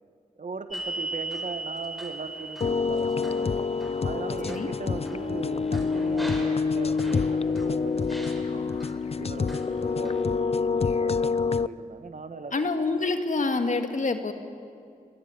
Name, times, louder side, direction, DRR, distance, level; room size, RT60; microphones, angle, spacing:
voice 1, 0.4-3.7 4.0-8.8 9.2-12.6, right 4 dB, 65° right, 9 dB, 1.5 m, -39 dB
sound 1, 0.7-7.7 8.1-8.9 9.5-10.2, right 2 dB, ahead, 5.0 m, -39 dB
sound 2, 2.6-11.7, left 4 dB, 45° left, 0.5 m, -27 dB
voice 2, 12.5-14.3, left 3 dB, 65° left, 6 dB, 2.0 m, -26 dB
25.5 x 17.0 x 9.2 m, 2.3 s
cardioid pair, 60°, 14 cm